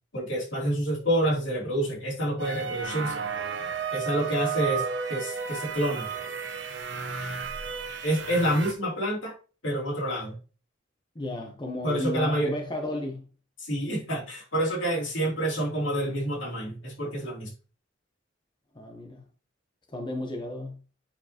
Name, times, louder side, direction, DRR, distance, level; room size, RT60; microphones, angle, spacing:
voice 1, 0.1-3.2 3.9-6.1 8.0-9.3 9.6-10.4 11.8-12.5 13.6-17.5, right 1 dB, 75° left, 2.8 m, -28 dB
sound 1, 2.4-8.7, right 6 dB, 70° right, 1.0 m, -33 dB
voice 2, 11.1-13.3 18.7-19.2 19.9-20.8, left 1 dB, 25° left, 0.8 m, -33 dB
8.6 x 4.7 x 2.8 m
head